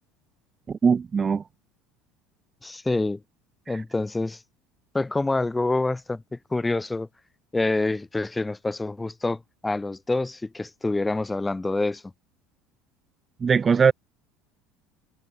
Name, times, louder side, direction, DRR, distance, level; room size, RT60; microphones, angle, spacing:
voice 1, 0.7-1.4 13.4-13.9, right 6 dB, 25° right, 0.5 m, -20 dB
voice 2, 2.6-3.2 3.7-4.4 4.9-7.1 7.5-12.1, left 2 dB, 10° left, 1.0 m, -27 dB
supercardioid pair, 115°, 0 cm